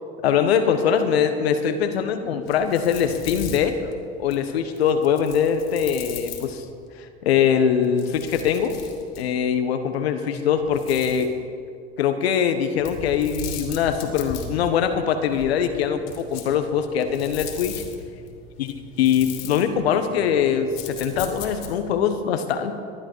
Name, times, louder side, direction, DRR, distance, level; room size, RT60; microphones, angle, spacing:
voice 1, 0.2-3.8 4.2-6.6 7.2-8.7 9.2-11.3 12.0-17.8 18.6-18.7 19.0-22.7, left 8 dB, 80° left, 8 dB, 1.3 m, -22 dB
sound 1, 2.4-6.9 7.7-9.4 10.5-11.3 12.8-21.9, left 5 dB, 60° left, 2.8 m, -39 dB
19.5 x 11.5 x 4.6 m, 2.3 s
hypercardioid pair, 85°, 31 cm